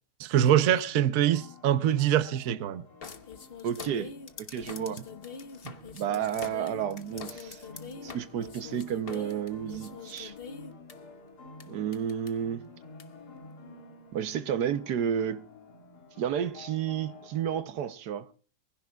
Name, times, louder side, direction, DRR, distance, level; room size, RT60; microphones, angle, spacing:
voice 1, 0.2-2.8 5.6-5.7, right 11 dB, 60° right, 1.2 m, -24 dB
sound 1, 0.6-17.6, left 3 dB, 75° left, 2.9 m, -50 dB
sound 2, 3.0-10.9 11.6-11.7 11.9-12.3 13.0-13.1, left 6 dB, 40° left, 1.1 m, -44 dB
voice 2, 3.6-4.1 4.5-5.0 5.9-7.6 8.0-10.3 11.7-12.6 14.1-15.5 16.2-18.3, right 9 dB, 80° right, 1.4 m, -31 dB
24.0 x 16.0 x 2.3 m
omnidirectional pair, 1.7 m